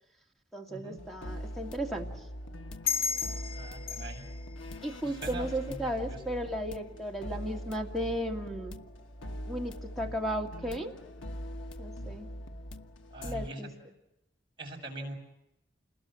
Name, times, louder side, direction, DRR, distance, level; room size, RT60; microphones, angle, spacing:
voice 1, 0.5-2.1 4.8-8.7 9.5-10.9 11.8-12.3 13.2-13.7, equal, ahead, 1 dB, 2.4 m, -35 dB
sound 1, 1.0-13.5, equal, 85° left, 1.3 m, -42 dB
sound 2, 2.9-6.0, left 5 dB, 50° left, 2.7 m, -36 dB
voice 2, 3.5-4.2 5.0-5.7 6.1-6.2 13.1-13.6 14.6-15.1, right 2 dB, 25° right, -1 dB, 6.6 m, -42 dB
28.0 x 21.0 x 7.7 m, 0.91 s
head